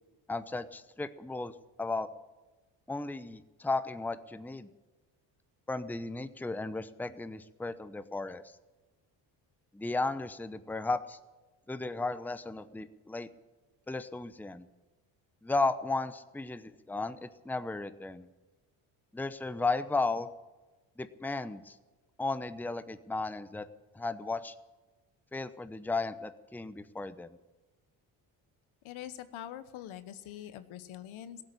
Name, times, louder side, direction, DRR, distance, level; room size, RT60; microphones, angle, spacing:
voice 1, 0.3-2.1 2.9-4.7 5.7-8.4 9.7-11.2 11.7-13.3 13.9-14.7 15.4-18.3 19.1-20.3 21.0-21.8 22.2-23.7 23.9-24.5 25.3-27.3, left 3 dB, 5° left, 12 dB, 0.8 m, -34 dB
voice 2, 28.8-31.4, left 11 dB, 70° left, 12 dB, 1.2 m, -44 dB
16.5 x 8.3 x 9.9 m, 1.2 s
supercardioid pair, 60°, 50 cm